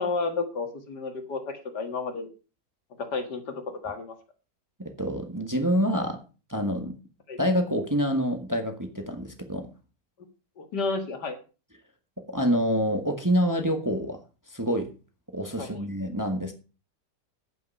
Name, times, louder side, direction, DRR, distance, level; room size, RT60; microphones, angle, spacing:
voice 1, 0.0-2.3 3.0-4.1 7.3-7.4 10.6-11.4 15.6-15.8, left 4 dB, 75° left, 6 dB, 2.4 m, -31 dB
voice 2, 4.8-6.2 6.5-7.0 7.4-9.7 12.2-14.2 14.5-14.9 15.3-16.5, equal, 10° right, 5 dB, 1.4 m, -27 dB
9.3 x 9.1 x 5.5 m, 0.33 s
omnidirectional pair, 1.8 m